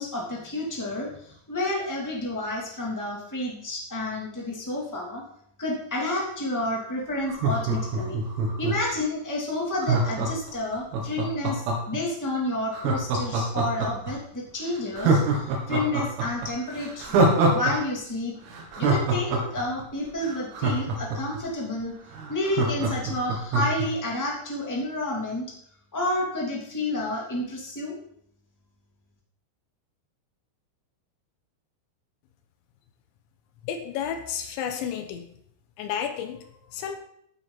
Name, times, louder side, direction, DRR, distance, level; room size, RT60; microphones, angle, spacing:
voice 1, 0.0-5.2 5.6-8.2 8.6-17.2 17.5-18.3 18.8-21.9 22.3-25.5 25.9-28.0, left 1 dB, 25° left, -3 dB, 0.3 m, -30 dB
Laughter, 7.2-8.9 9.8-12.0 12.7-14.1 14.5-14.6 15.0-17.7 18.0-18.1 18.5-21.4 21.8-21.9 22.1-23.9 24.2-24.3, right 3 dB, 80° right, 4.9 m, -24 dB
voice 2, 33.6-35.3 35.8-37.0, left 8 dB, 75° left, 7 dB, 2.9 m, -32 dB
14.5 x 9.8 x 4.1 m, 0.68 s
omnidirectional pair, 6.0 m